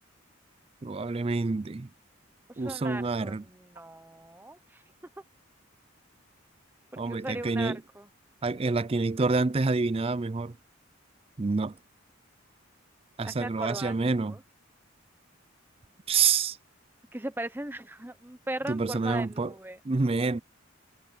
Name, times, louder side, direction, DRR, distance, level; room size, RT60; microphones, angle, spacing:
voice 1, 0.8-1.9 2.6-3.4 7.0-7.8 8.4-10.6 11.4-11.7 13.2-14.3 16.1-16.6 18.7-19.5 19.8-20.4, right 4 dB, 30° right, 0.4 m, -27 dB
voice 2, 2.6-4.8 7.1-8.1 13.2-14.4 17.1-19.8, right 1 dB, 10° right, 0.9 m, -38 dB
head